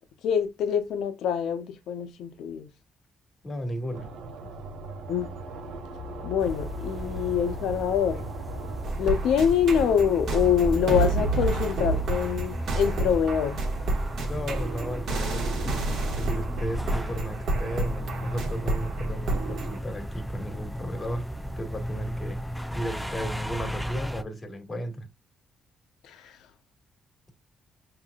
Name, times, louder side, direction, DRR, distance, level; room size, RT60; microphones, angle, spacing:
voice 1, 0.2-2.7 5.1-5.3 6.2-8.3 9.0-13.7 26.1-26.3, left 8 dB, 80° left, 0.8 m, -25 dB
voice 2, 3.4-4.1 14.2-21.3 21.6-22.4 22.7-25.1, equal, 30° left, 1.6 m, -35 dB
sound 1, 3.9-8.9, right 1 dB, 85° right, 1.0 m, -38 dB
sound 2, 6.4-24.2, equal, ahead, 0.4 m, -35 dB
sound 3, 8.8-19.8, right 2 dB, 65° right, 1.4 m, -30 dB
5.6 x 3.0 x 2.3 m
cardioid pair, 90°, 0 cm